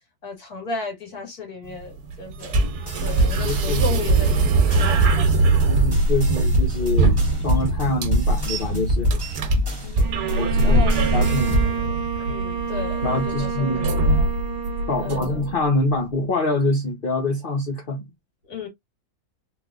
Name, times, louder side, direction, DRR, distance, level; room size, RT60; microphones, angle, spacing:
voice 1, 0.2-2.7 3.0-4.4 4.6-5.5 9.8-10.2 10.6-11.2 12.3-14.3 15.0-15.4 18.5-18.7, left 3 dB, 75° left, 2.3 m, -34 dB
sound 1, 1.6-15.6, right 2 dB, 85° right, 1.4 m, -23 dB
sound 2, 2.4-11.9, equal, 15° right, 1.3 m, -24 dB
voice 2, 3.3-3.9 5.7-7.2 7.4-9.1 9.6-9.9 10.3-10.8 11.1-11.6 12.3-12.4 13.0-13.9 14.9-18.1, left 2 dB, 40° left, 0.9 m, -25 dB
Bowed string instrument, 10.0-15.8, right 7 dB, 45° right, 0.5 m, -30 dB
3.4 x 3.3 x 2.4 m
omnidirectional pair, 1.6 m